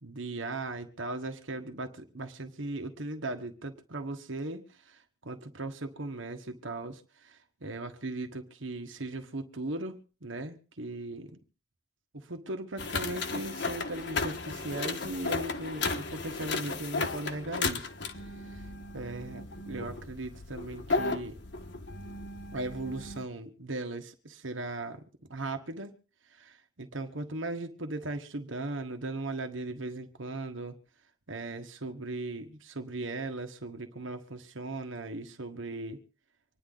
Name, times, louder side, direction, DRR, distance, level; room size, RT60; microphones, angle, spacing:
voice 1, 0.0-11.4 12.1-17.9 18.2-18.6 18.9-21.4 22.5-25.0 25.3-25.9 26.3-30.8 31.3-36.0, right 2 dB, 90° right, 6 dB, 1.5 m, -38 dB
sound 1, 12.8-23.2, left 3 dB, 65° left, 1.3 m, -35 dB
25.5 x 10.5 x 4.0 m, 0.37 s
head